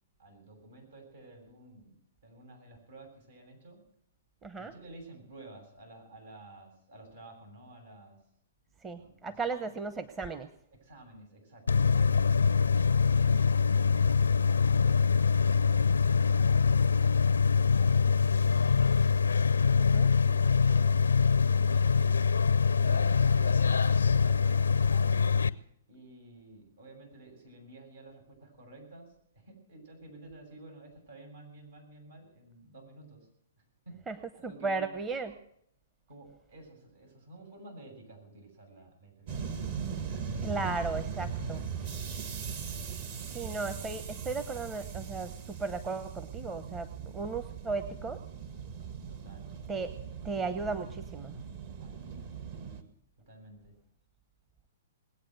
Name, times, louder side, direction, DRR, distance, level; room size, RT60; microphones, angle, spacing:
voice 1, 0.2-3.8 4.6-8.2 8.9-9.7 10.7-12.3 13.1-15.0 15.4-17.3 17.7-19.1 20.0-21.1 21.4-22.2 22.7-25.3 25.9-33.3 33.9-34.0 34.3-34.9 36.1-39.3 41.3-41.8 47.4-47.6 49.1-49.5 51.8-52.3 53.3-53.7, right 2 dB, 75° right, 2 dB, 7.5 m, -51 dB
voice 2, 4.4-4.7 8.8-10.5 19.8-20.1 34.1-34.2 34.4-35.4 40.4-41.6 43.3-48.2 49.7-49.9 50.2-51.3, right 4 dB, 20° right, 9 dB, 0.9 m, -35 dB
sound 1, 11.7-25.5, left 6 dB, 85° left, 0.5 m, -24 dB
sound 2, 39.3-52.8, right 6 dB, 50° right, 1.9 m, -39 dB
20.5 x 8.7 x 8.0 m, 0.73 s
hypercardioid pair, 120°, 0 cm